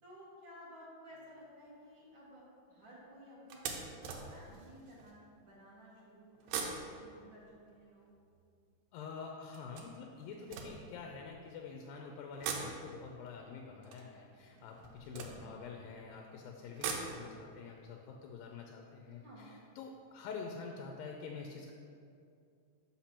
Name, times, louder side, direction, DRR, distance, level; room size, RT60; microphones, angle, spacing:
voice 1, 0.0-2.4 2.7-8.1 15.1-15.6 19.1-19.5, equal, 55° right, -7 dB, 1.4 m, -55 dB
sound 1, 1.1-1.5 2.0-2.2 2.6-2.7 3.5-5.2 6.3-8.7 9.5-11.5 12.3-16.0 16.5-19.5 19.8-19.9 20.2-20.3, right 5 dB, 85° right, 2.3 m, -44 dB
voice 2, 8.9-21.7, left 5 dB, 90° left, 1 dB, 2.3 m, -47 dB
5.9 x 5.4 x 4.3 m, 2.4 s
omnidirectional pair, 3.9 m